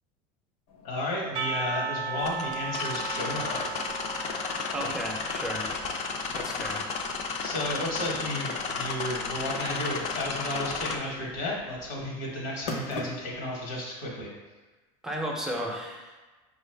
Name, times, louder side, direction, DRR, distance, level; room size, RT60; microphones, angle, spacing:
sound 1, 0.7-13.5, left 2 dB, 70° left, 0.8 m, -47 dB
voice 1, 0.8-3.9 7.4-14.3, left 1 dB, 85° left, -2 dB, 1.3 m, -33 dB
Percussion, 1.4-6.2, right 5 dB, 65° right, 0.4 m, -36 dB
sound 2, 2.2-11.0, left 4 dB, 45° left, 0.5 m, -33 dB
voice 2, 4.7-5.7 6.3-6.8 15.0-16.2, equal, 5° right, -1 dB, 0.5 m, -34 dB
4.5 x 2.4 x 3.3 m, 1.2 s
supercardioid pair, 130°, 16 cm